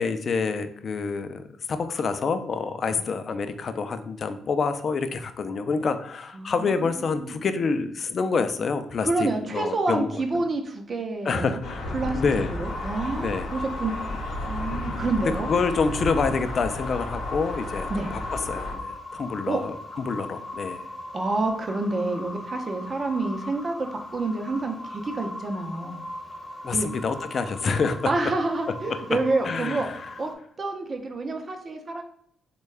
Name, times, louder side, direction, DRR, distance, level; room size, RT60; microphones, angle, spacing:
voice 1, 0.0-10.4 11.3-12.5 13.2-13.5 15.2-20.8 26.6-28.1 28.9-29.2 29.4-30.0, left 4 dB, 55° left, 10 dB, 0.3 m, -27 dB
voice 2, 6.3-7.4 9.0-11.6 11.9-13.9 14.4-15.5 17.9-18.1 19.5-19.6 21.1-26.0 26.7-26.9 28.1-29.9 30.2-30.3 30.6-32.0, right 3 dB, 45° right, 4 dB, 0.6 m, -28 dB
sound 1, 11.6-18.7, left 1 dB, 75° left, 0.7 m, -33 dB
sound 2, 12.6-30.3, left 2 dB, 15° left, 0.7 m, -39 dB
3.4 x 2.2 x 3.2 m, 0.68 s
supercardioid pair, 65°, 0 cm